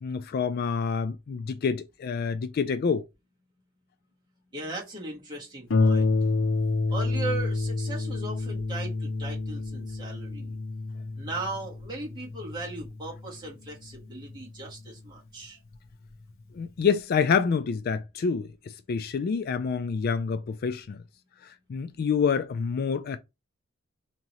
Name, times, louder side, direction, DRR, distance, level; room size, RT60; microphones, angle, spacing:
voice 1, 0.0-3.0 16.5-18.5 18.9-21.0 21.7-23.2, left 6 dB, 50° left, 0.3 m, -27 dB
voice 2, 4.5-6.1 6.9-10.5 11.2-15.6, right 2 dB, 20° right, 1.4 m, -38 dB
Harp, 5.7-14.9 15.7-15.8 16.3-16.4, left 3 dB, 70° left, 0.7 m, -29 dB
3.6 x 3.0 x 3.0 m
head